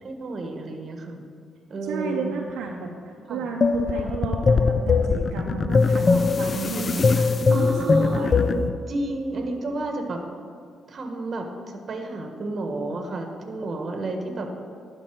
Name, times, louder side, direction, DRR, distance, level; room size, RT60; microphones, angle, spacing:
voice 1, 0.0-1.3 1.7-2.3 3.3-3.5 6.0-6.3 7.5-8.3 8.9-10.2 10.9-14.5, right 2 dB, 45° right, 4 dB, 1.2 m, -31 dB
voice 2, 1.8-8.7, right 5 dB, 85° right, 0 dB, 0.7 m, -32 dB
sound 1, 3.6-8.8, left 4 dB, 40° left, 0.3 m, -21 dB
11.0 x 5.3 x 4.5 m, 2.4 s
cardioid pair, 90°, 0 cm